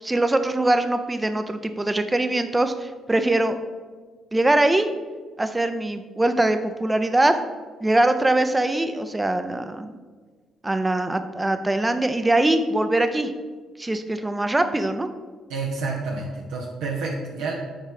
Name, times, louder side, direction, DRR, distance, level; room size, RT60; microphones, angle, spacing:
voice 1, 0.0-3.6 4.3-4.9 5.4-7.4 7.8-9.9 10.6-13.3 13.8-15.1, right 2 dB, 20° right, 8 dB, 0.7 m, -22 dB
voice 2, 15.5-17.5, right 3 dB, 75° right, -3 dB, 0.9 m, -29 dB
7.5 x 4.5 x 5.2 m, 1.5 s
hypercardioid pair, 50°, 0 cm